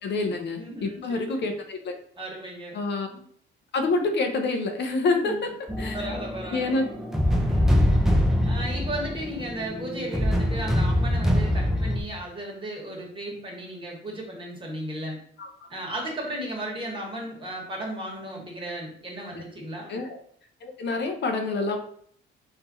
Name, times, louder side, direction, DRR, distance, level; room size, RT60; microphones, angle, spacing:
voice 1, 0.0-1.9 2.7-3.1 3.7-5.3 5.8-6.1 6.5-6.9 15.4-15.7 19.3-19.4 19.9-20.2 20.6-21.8, left 3 dB, 60° left, 4 dB, 0.7 m, -27 dB
voice 2, 0.6-1.2 2.2-2.8 3.1-3.2 5.1-5.5 5.9-6.7 7.5-7.8 8.4-15.2 15.7-19.9, right 1 dB, 25° right, -2 dB, 1.6 m, -35 dB
sound 1, 5.7-12.0, left 1 dB, ahead, 0.7 m, -24 dB
3.7 x 2.8 x 4.2 m, 0.62 s
cardioid pair, 90°, 20 cm